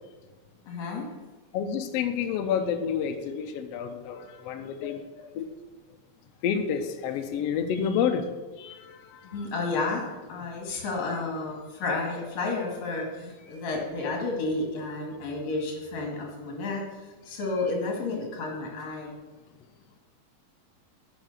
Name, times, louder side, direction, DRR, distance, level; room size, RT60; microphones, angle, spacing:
voice 1, 0.7-1.1 4.8-5.2 9.2-19.2, left 3 dB, 60° left, 0 dB, 3.2 m, -31 dB
voice 2, 1.5-5.0 5.3-5.4 6.4-8.3 8.6-9.2, left 7 dB, 85° left, 7 dB, 1.4 m, -29 dB
8.9 x 6.3 x 6.6 m, 1.2 s
omnidirectional pair, 3.7 m